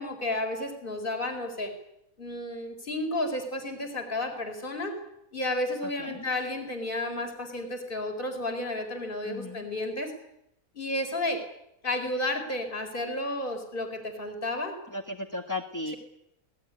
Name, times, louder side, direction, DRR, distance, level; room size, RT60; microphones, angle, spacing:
voice 1, 0.0-1.7 2.2-5.0 5.3-10.1 10.7-11.4 11.8-14.8, left 1 dB, 35° left, 6 dB, 4.7 m, -32 dB
voice 2, 5.8-6.3 9.2-9.7 14.9-15.9, left 2 dB, 10° left, 2 dB, 1.7 m, -36 dB
26.0 x 19.0 x 9.7 m, 0.81 s
omnidirectional pair, 1.6 m